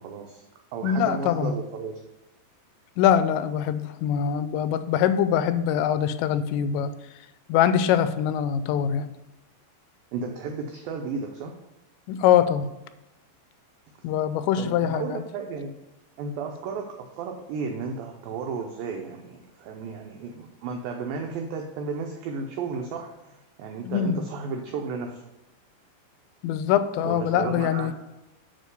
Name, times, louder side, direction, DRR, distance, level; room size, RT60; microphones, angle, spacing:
voice 1, 0.0-0.4 0.7-2.0 10.1-11.6 14.0-14.1 14.6-15.7 16.2-25.2 27.0-27.9, right 5 dB, 85° right, 3 dB, 2.0 m, -33 dB
voice 2, 0.8-1.6 3.0-6.9 7.5-9.1 12.1-12.7 14.0-15.2 23.9-24.2 26.4-27.9, left 9 dB, 90° left, 12 dB, 2.8 m, -23 dB
8.8 x 3.6 x 6.7 m, 0.96 s
omnidirectional pair, 5.0 m